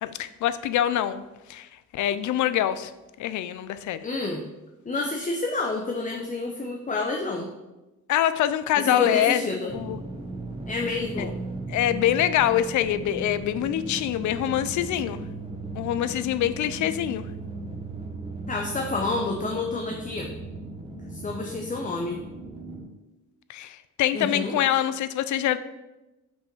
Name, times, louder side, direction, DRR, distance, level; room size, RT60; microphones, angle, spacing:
voice 1, 0.0-1.7 1.9-2.9 3.2-4.0 8.1-9.4 9.7-10.0 11.2-11.3 11.7-15.2 15.7-17.3 23.5-25.6, left 11 dB, 75° left, 13 dB, 0.5 m, -25 dB
voice 2, 4.0-4.5 4.8-7.5 8.8-9.7 10.7-11.3 18.5-20.3 21.1-22.2 24.1-24.6, left 3 dB, 25° left, 1 dB, 0.9 m, -29 dB
sound 1, 9.7-22.8, right 2 dB, 20° right, 1.6 m, -37 dB
5.5 x 5.5 x 5.4 m, 1.0 s
cardioid pair, 90°, 30 cm